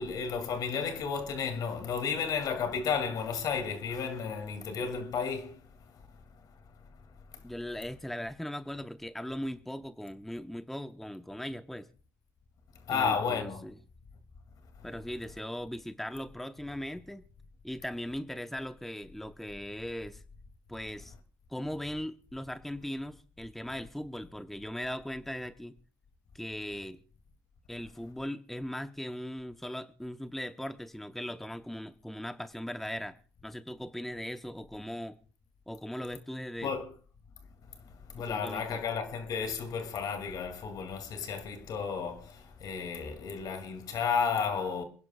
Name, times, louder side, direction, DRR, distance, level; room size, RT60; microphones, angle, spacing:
voice 1, 0.0-5.6 12.9-13.6 36.6-36.9 38.1-44.8, left 6 dB, 60° left, 2.4 m, -32 dB
voice 2, 7.4-11.9 12.9-13.8 14.8-17.2 17.6-20.2 20.7-21.1 21.5-25.7 26.3-27.0 27.7-33.2 33.4-35.2 35.7-36.7 38.3-38.8, equal, 5° left, 0.8 m, -39 dB
27.0 x 11.0 x 2.3 m
supercardioid pair, 75°, 8 cm